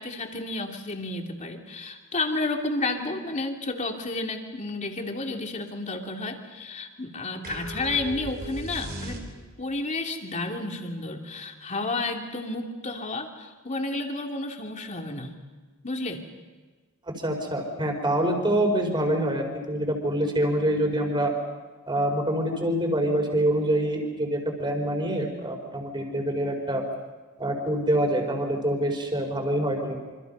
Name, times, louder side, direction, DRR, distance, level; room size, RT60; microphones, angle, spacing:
voice 1, 0.0-9.2 9.6-15.4 15.8-16.2, left 2 dB, 35° left, 2 dB, 2.8 m, -31 dB
sound 1, 7.4-9.7, right 1 dB, 45° right, 4.3 m, -37 dB
voice 2, 17.1-21.3 21.9-26.8 27.4-30.0, right 1 dB, 20° right, 3 dB, 4.8 m, -26 dB
27.5 x 26.0 x 5.5 m, 1.3 s
head